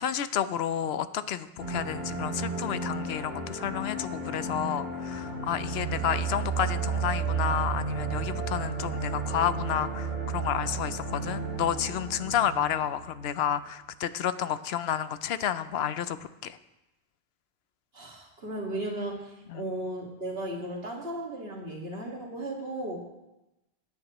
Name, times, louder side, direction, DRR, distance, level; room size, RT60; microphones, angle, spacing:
voice 1, 0.0-16.2 16.4-16.6 19.5-19.6, left 9 dB, 80° left, 13 dB, 0.8 m, -30 dB
sound 1, 1.6-13.5, right 4 dB, 45° right, 3.1 m, -33 dB
voice 2, 17.9-23.0, right 1 dB, 70° right, -1 dB, 2.2 m, -35 dB
16.5 x 9.6 x 3.0 m, 0.98 s
omnidirectional pair, 1.0 m